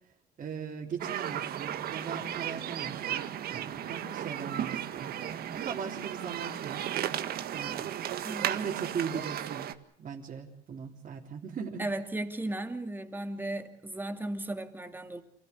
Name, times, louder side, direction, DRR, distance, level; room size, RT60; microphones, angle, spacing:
voice 1, 0.4-7.0 7.5-7.9 8.4-9.7 10.0-11.8, right 6 dB, 50° right, 4.0 m, -39 dB
sound 1, 1.0-9.7, right 11 dB, 65° right, 1.7 m, -35 dB
voice 2, 11.8-15.2, right 1 dB, 10° right, 2.7 m, -35 dB
28.5 x 16.5 x 8.7 m
cardioid pair, 110°, 17 cm